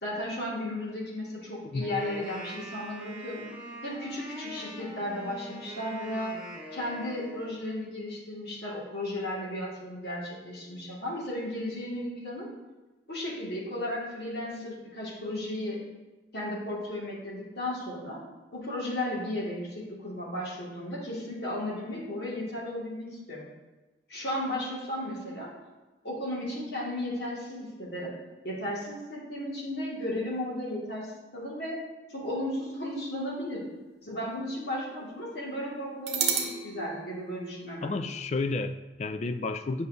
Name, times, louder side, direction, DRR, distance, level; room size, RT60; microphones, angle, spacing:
voice 1, 0.0-3.5 3.8-6.3 6.7-12.5 13.1-15.8 16.3-18.2 18.5-23.4 24.1-25.5 26.0-28.1 28.4-31.1 31.3-31.8 32.1-33.6 34.0-37.9, left 1 dB, 65° left, -5 dB, 2.0 m, -34 dB
Wind instrument woodwind instrument, 1.8-7.7, equal, 10° right, 1.8 m, -43 dB
sound 1, 32.7-34.4 34.7-34.8 36.1-38.2, right 6 dB, 65° right, 0.8 m, -34 dB
voice 2, 37.8-39.9, left 3 dB, 40° left, 10 dB, 0.3 m, -31 dB
8.4 x 5.5 x 2.7 m, 1.1 s
head